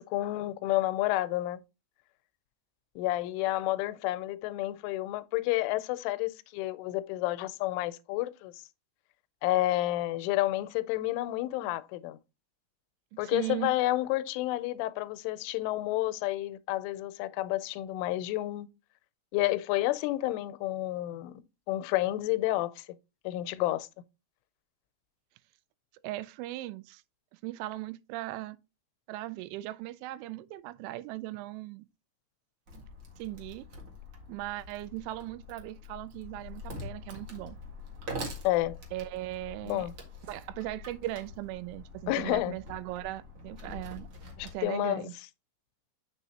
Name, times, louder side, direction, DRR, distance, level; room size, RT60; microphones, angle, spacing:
voice 1, 0.0-1.6 3.0-8.5 9.4-12.2 13.2-18.7 19.3-21.4 21.7-22.9 23.3-23.9 38.4-38.8 39.6-39.9 42.1-42.6 44.4-45.1, left 16 dB, 85° left, 3.1 m, -30 dB
voice 2, 13.1-13.7 26.0-27.0 27.3-28.6 29.1-31.8 33.2-33.7 34.3-37.6 38.9-39.9 40.3-44.1 44.4-45.1, right 17 dB, 85° right, 3.0 m, -38 dB
Wood, 32.7-44.6, left 1 dB, 65° right, 1.3 m, -45 dB
7.9 x 6.1 x 2.8 m
omnidirectional pair, 5.5 m